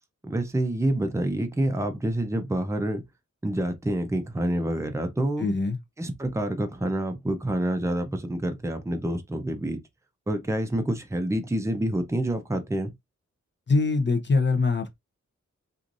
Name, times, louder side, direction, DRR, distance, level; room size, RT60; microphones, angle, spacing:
voice 1, 0.2-3.0 3.4-5.5 6.0-9.8 10.3-12.9, right 1 dB, 10° right, 0.6 m, -27 dB
voice 2, 5.4-5.8 13.7-14.9, left 3 dB, 40° left, 0.7 m, -23 dB
3.1 x 2.4 x 2.5 m
wide cardioid pair, 75°, 30 cm